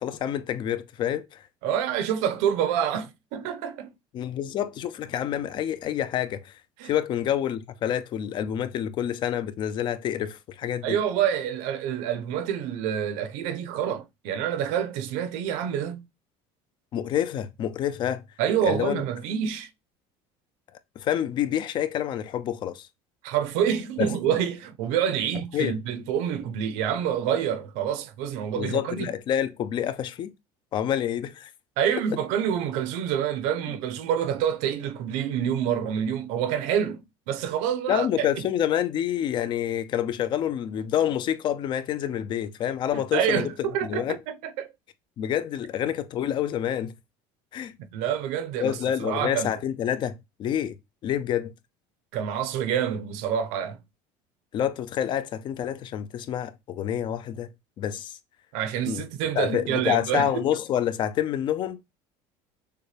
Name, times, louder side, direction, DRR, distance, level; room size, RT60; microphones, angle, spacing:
voice 1, 0.0-1.4 4.1-11.0 16.9-18.2 18.6-19.0 21.0-22.9 24.0-24.1 25.5-25.8 28.5-30.3 30.7-31.5 33.7-33.8 37.9-44.2 45.2-46.9 47.5-47.7 48.6-50.8 51.0-51.5 54.5-57.5 57.8-58.2 58.9-59.1 59.3-61.8, left 10 dB, 40° left, 0.5 m, -28 dB
voice 2, 1.6-3.9 6.8-6.9 10.8-16.0 18.4-19.7 23.2-29.1 31.8-38.3 42.9-44.7 47.9-49.5 52.1-53.8 58.5-60.5, right 9 dB, 70° right, 0.7 m, -27 dB
6.6 x 2.2 x 3.3 m
cardioid pair, 155°, 13 cm